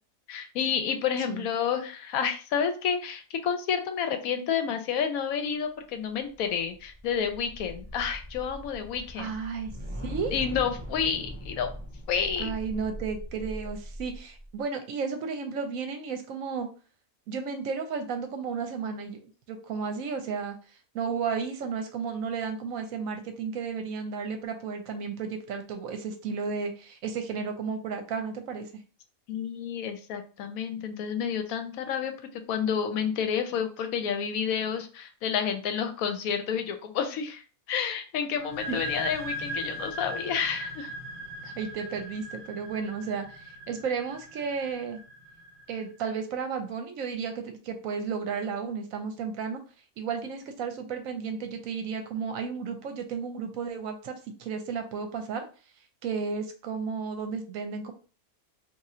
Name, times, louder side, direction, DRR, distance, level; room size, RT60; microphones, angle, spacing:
voice 1, 0.3-9.3 10.3-11.7 12.1-12.5 29.3-32.1 32.5-40.9, left 7 dB, 80° left, 7 dB, 1.1 m, -30 dB
sound 1, 6.1-14.5, equal, 10° right, 1.2 m, -40 dB
voice 2, 9.2-9.7 10.0-10.3 12.4-16.7 17.3-20.6 20.9-28.7 38.7-38.8 41.4-45.0 45.7-49.6 50.0-54.1 54.4-55.4 56.0-57.9, right 5 dB, 75° right, 6 dB, 1.0 m, -33 dB
sound 2, 38.4-45.8, equal, 40° right, 1.1 m, -39 dB
2.6 x 2.5 x 4.2 m, 0.36 s
omnidirectional pair, 1.5 m